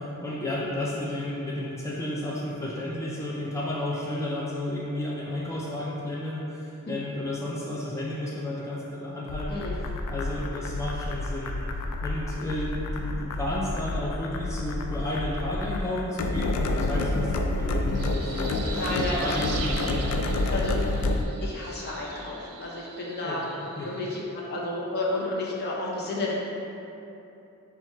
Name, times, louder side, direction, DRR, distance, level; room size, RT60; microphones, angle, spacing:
voice 1, 0.0-9.6 10.1-11.5 12.0-20.2 23.2-23.4 23.8-23.9, left 1 dB, 15° left, -6 dB, 0.4 m, -32 dB
sound 1, 9.3-21.2, left 2 dB, 85° left, 0.3 m, -29 dB
voice 2, 9.5-9.8 18.7-19.4 20.5-20.8 21.4-23.4 23.8-26.3, left 2 dB, 45° left, -4 dB, 0.7 m, -31 dB
sound 2, 17.6-24.2, right 5 dB, 85° right, 0.4 m, -41 dB
4.4 x 2.4 x 4.3 m, 2.9 s
head